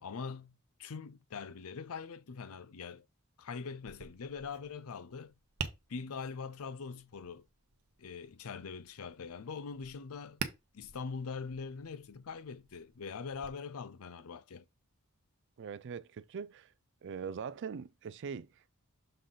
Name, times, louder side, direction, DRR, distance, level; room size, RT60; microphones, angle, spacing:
voice 1, 0.0-3.1 3.4-5.3 5.9-7.5 8.0-10.4 10.7-14.6, left 5 dB, 70° left, 0.5 m, -43 dB
Tap, 3.8-13.5, right 5 dB, 75° right, 0.9 m, -48 dB
voice 2, 15.6-16.7 17.0-18.7, right 6 dB, 55° right, 0.4 m, -42 dB
6.5 x 3.9 x 3.8 m
head